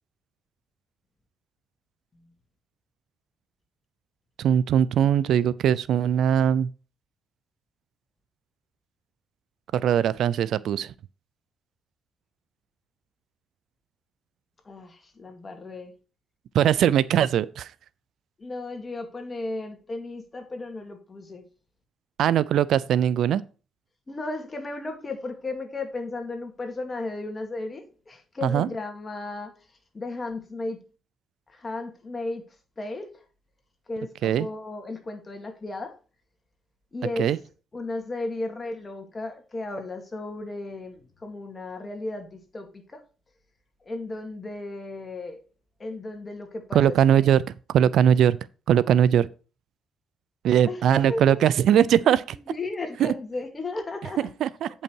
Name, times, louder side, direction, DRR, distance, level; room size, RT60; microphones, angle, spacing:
voice 1, 4.4-6.7 9.7-10.9 16.5-17.7 22.2-23.4 28.4-28.7 34.2-34.5 37.2-37.4 46.7-47.4 47.7-48.4 48.7-49.3 50.4-52.4 53.0-53.1 54.4-54.7, right 9 dB, 75° right, 0.4 m, -20 dB
voice 2, 14.6-15.9 18.4-21.5 24.1-30.8 31.5-33.2 33.9-36.0 36.9-37.3 37.7-43.0 43.8-45.4 45.8-47.3 50.7-51.4 52.0-54.3, left 2 dB, 30° left, 2.1 m, -35 dB
8.5 x 5.6 x 4.6 m
cardioid pair, 90°, 0 cm